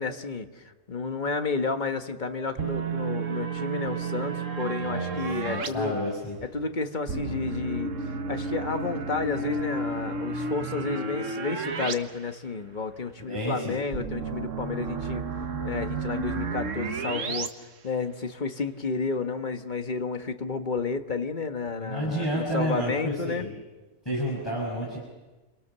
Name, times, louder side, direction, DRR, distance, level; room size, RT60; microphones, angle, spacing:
voice 1, 0.0-6.0 6.5-8.0 8.3-15.2 15.6-17.5 17.8-23.5, left 4 dB, 35° left, 7 dB, 1.6 m, -31 dB
sound 1, 2.6-5.7 7.1-11.9 12.3-12.4 13.9-17.5, right 4 dB, 70° right, 1.7 m, -32 dB
voice 2, 4.8-5.1 5.4-6.4 13.2-13.8 21.8-23.5 24.0-25.0, equal, 20° left, -5 dB, 6.0 m, -30 dB
29.5 x 23.5 x 6.9 m, 1.2 s
omnidirectional pair, 1.4 m